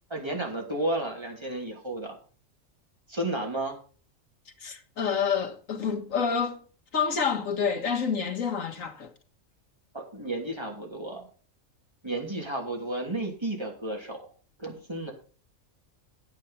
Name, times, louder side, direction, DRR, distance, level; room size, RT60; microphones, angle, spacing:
voice 1, 0.1-2.1 3.1-3.8 9.9-11.3 12.0-14.3 14.6-15.1, right 1 dB, 20° right, 3.0 m, -32 dB
voice 2, 4.6-6.6 6.9-9.1, left 6 dB, 85° left, 2.0 m, -28 dB
9.2 x 9.2 x 5.6 m
omnidirectional pair, 1.3 m